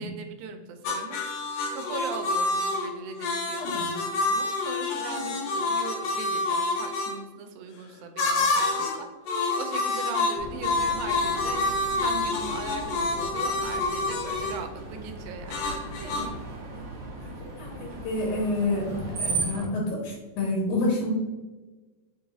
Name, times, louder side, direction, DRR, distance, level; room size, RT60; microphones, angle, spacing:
voice 1, 0.0-16.5, right 6 dB, 90° right, 6 dB, 2.1 m, -40 dB
sound 1, 0.8-7.1 8.2-9.0 9.3-14.6 15.5-16.3, left 3 dB, 70° left, 1.7 m, -27 dB
voice 2, 3.6-3.9 16.0-16.3 16.7-16.8 17.2-21.1, left 2 dB, 90° left, -3 dB, 2.4 m, -29 dB
Screech, 10.4-19.7, right 3 dB, 55° right, 1.8 m, -37 dB
5.1 x 3.9 x 2.7 m, 1.2 s
omnidirectional pair, 3.4 m